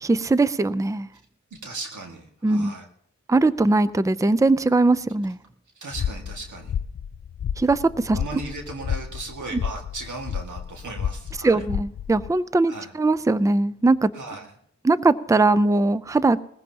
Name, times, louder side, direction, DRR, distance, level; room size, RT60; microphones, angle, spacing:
voice 1, 0.0-1.1 2.4-2.7 3.3-5.4 7.6-8.2 11.4-14.1 14.8-16.4, right 2 dB, 10° right, 16 dB, 0.5 m, -20 dB
voice 2, 1.5-2.9 5.8-6.8 8.1-11.6 12.6-12.9 14.1-14.5, right 3 dB, 80° right, 2 dB, 2.0 m, -37 dB
sound 1, 5.9-12.3, left 8 dB, 45° left, 0.4 m, -31 dB
20.0 x 15.0 x 2.9 m, 0.69 s
cardioid pair, 50°, 29 cm